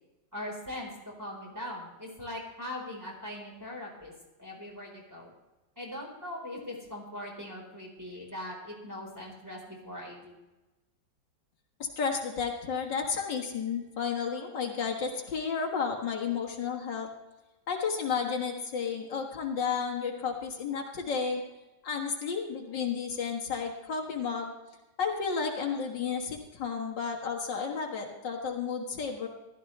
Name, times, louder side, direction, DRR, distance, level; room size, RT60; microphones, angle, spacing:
voice 1, 0.3-0.9 1.2-4.1 4.4-5.3 5.8-10.4, left 1 dB, 10° right, -2 dB, 4.2 m, -40 dB
voice 2, 11.8-17.1 17.7-21.4 21.8-24.5 25.0-29.3, left 6 dB, 85° left, 1 dB, 2.3 m, -32 dB
15.5 x 13.0 x 3.3 m, 1.0 s
omnidirectional pair, 1.9 m